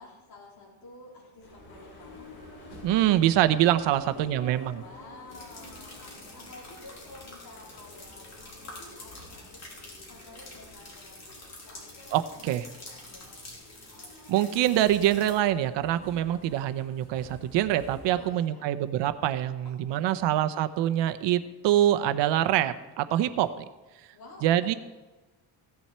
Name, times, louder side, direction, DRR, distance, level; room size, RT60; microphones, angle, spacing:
voice 1, 0.0-2.3 3.9-12.5 12.8-13.7 18.1-18.8 19.9-20.3 23.4-23.5 24.1-24.8, left 3 dB, 55° left, -3 dB, 4.1 m, -50 dB
sound 1, 1.4-18.3, left 1 dB, 70° left, 4.5 m, -50 dB
voice 2, 2.8-4.8 12.1-12.7 14.3-23.5 24.4-24.7, right 12 dB, 80° right, 10 dB, 0.9 m, -25 dB
sound 2, 5.3-15.4, left 2 dB, 35° left, 3.2 m, -47 dB
16.0 x 10.5 x 4.4 m, 1.2 s
cardioid pair, 180°, 43 cm